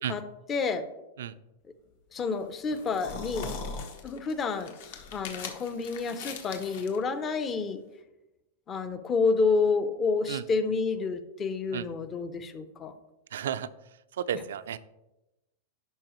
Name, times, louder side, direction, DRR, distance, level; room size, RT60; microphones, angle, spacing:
voice 1, 0.5-0.9 2.1-3.5 4.0-4.8 5.1-7.8 8.7-12.9, left 4 dB, 20° left, 10 dB, 0.5 m, -29 dB
sound 1, 2.2-7.0, left 6 dB, 65° left, 1.1 m, -44 dB
sound 2, 2.7-4.0 4.3-4.4 4.8-5.5, left 3 dB, 45° left, 1.5 m, -39 dB
voice 2, 13.3-13.7 14.1-14.8, right 9 dB, 85° right, 13 dB, 0.4 m, -32 dB
11.0 x 4.8 x 3.0 m, 0.97 s
supercardioid pair, 155°, 0 cm